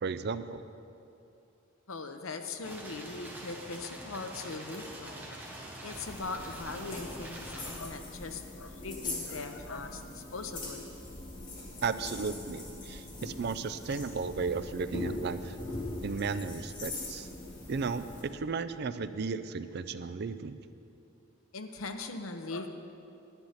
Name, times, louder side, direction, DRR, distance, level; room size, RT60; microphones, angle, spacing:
voice 1, 0.0-0.6 11.8-15.6 16.0-17.3 17.7-20.6, right 5 dB, 55° right, 12 dB, 0.4 m, -34 dB
voice 2, 1.9-5.4 5.8-10.8 21.5-22.7, left 3 dB, 90° left, 7 dB, 0.8 m, -40 dB
sound 1, 2.6-7.8, right 1 dB, 10° right, 1.2 m, -45 dB
sound 2, 5.9-18.2, left 2 dB, 40° left, 2.6 m, -41 dB
10.5 x 10.5 x 5.7 m, 2.7 s
head